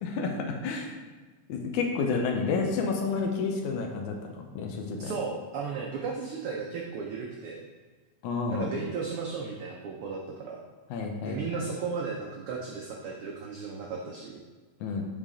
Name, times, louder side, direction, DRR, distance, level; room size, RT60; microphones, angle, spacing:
voice 1, 0.0-1.0 1.5-5.1 8.2-8.7 10.9-11.4 14.8-15.0, left 4 dB, 80° left, 2 dB, 2.2 m, -30 dB
voice 2, 5.0-7.6 8.5-10.6 11.2-14.4, right 5 dB, 90° right, -1 dB, 1.2 m, -35 dB
7.2 x 5.0 x 3.7 m, 1.3 s
omnidirectional pair, 3.4 m